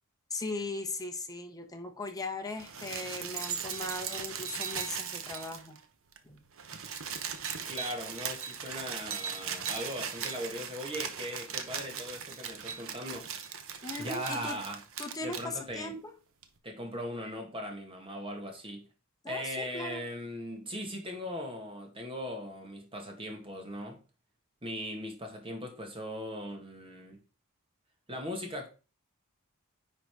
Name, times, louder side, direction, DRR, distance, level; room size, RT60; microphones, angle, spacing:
voice 1, 0.3-5.8 6.2-6.4 13.8-14.6 15.0-16.1 19.2-20.0 20.6-20.7, left 2 dB, 15° left, 1.2 m, -38 dB
sound 1, 2.5-5.8 6.1-6.2 6.4-15.5 16.4-16.5, right 7 dB, 65° right, 1.0 m, -38 dB
voice 2, 7.7-13.3 14.0-14.8 15.2-15.9 16.6-18.8 19.3-24.0 24.6-27.2 28.1-28.7, equal, 25° right, 2.0 m, -39 dB
9.9 x 4.1 x 4.7 m
head